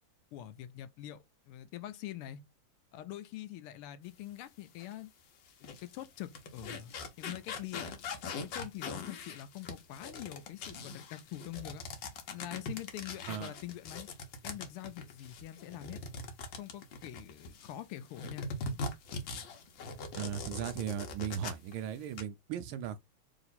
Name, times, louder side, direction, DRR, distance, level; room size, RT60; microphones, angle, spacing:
voice 1, 0.3-2.4 2.9-5.1 5.6-6.9 7.2-7.9 8.4-11.8 12.3-14.1 14.4-16.0 16.6-18.5, left 13 dB, 85° left, 1.5 m, -44 dB
sound 1, 4.8-4.9 5.5-17.7 18.1-21.7 22.0-22.2, left 3 dB, 65° left, 1.5 m, -42 dB
voice 2, 20.2-23.0, right 9 dB, 75° right, 1.4 m, -37 dB
3.8 x 3.0 x 4.1 m
omnidirectional pair, 2.4 m